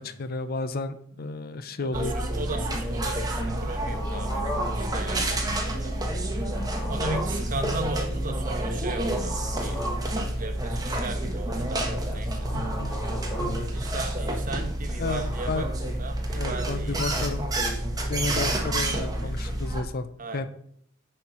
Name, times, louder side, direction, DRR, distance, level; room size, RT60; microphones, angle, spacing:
voice 1, 0.0-2.1 7.5-7.8 12.5-12.9 13.4-13.7 15.0-15.7 16.4-17.5 18.1-20.1 20.3-20.5, left 3 dB, 50° left, 12 dB, 0.6 m, -32 dB
voice 2, 1.8-6.0 6.9-9.8 10.1-11.8 12.1-12.5 13.7-15.7 16.0-17.2 19.2-19.3 20.2-20.5, right 3 dB, 45° right, 5 dB, 1.2 m, -37 dB
sound 1, 1.9-19.8, right 1 dB, 20° right, 1.2 m, -29 dB
sound 2, 2.0-17.4, right 1 dB, 15° left, 2.4 m, -41 dB
9.6 x 4.5 x 5.6 m, 0.67 s
head